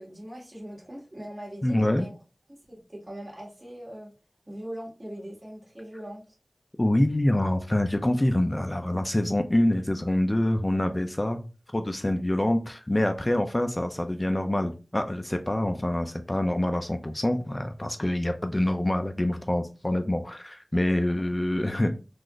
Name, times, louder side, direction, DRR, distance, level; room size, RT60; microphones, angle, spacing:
voice 1, 0.0-2.2 2.5-4.1 4.5-6.2 20.9-21.2, equal, 45° right, -4 dB, 1.9 m, -41 dB
voice 2, 1.6-2.1 6.8-11.4 11.7-22.0, left 1 dB, 25° left, 6 dB, 0.4 m, -26 dB
3.9 x 2.5 x 3.1 m, 0.32 s
wide cardioid pair, 50°, 0 cm